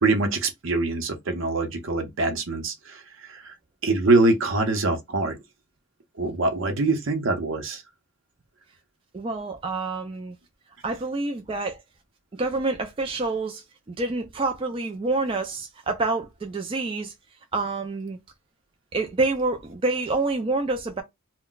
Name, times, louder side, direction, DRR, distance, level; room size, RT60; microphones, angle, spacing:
voice 1, 0.0-3.5 3.8-5.4 6.2-7.8, right 2 dB, 70° right, 0.8 m, -24 dB
voice 2, 9.1-10.4 10.8-11.8 12.4-17.1 17.5-18.2 18.9-21.0, right 3 dB, 25° right, 0.3 m, -27 dB
2.3 x 2.1 x 3.8 m
head